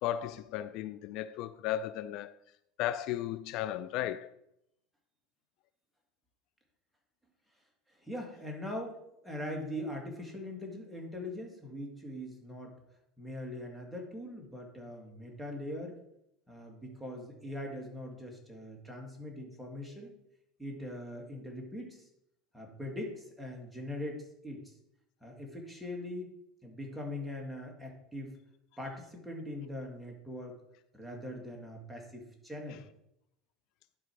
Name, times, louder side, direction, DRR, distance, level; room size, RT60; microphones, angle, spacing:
voice 1, 0.0-2.3 2.8-4.3, left 12 dB, 60° left, 0.4 m, -35 dB
voice 2, 7.9-12.8 13.2-16.0 16.5-20.1 20.6-22.1 22.5-24.7 25.2-26.3 26.6-28.3 28.8-30.6 30.9-32.8, left 1 dB, ahead, 2.2 m, -41 dB
11.0 x 4.9 x 4.7 m
supercardioid pair, 115°, 0 cm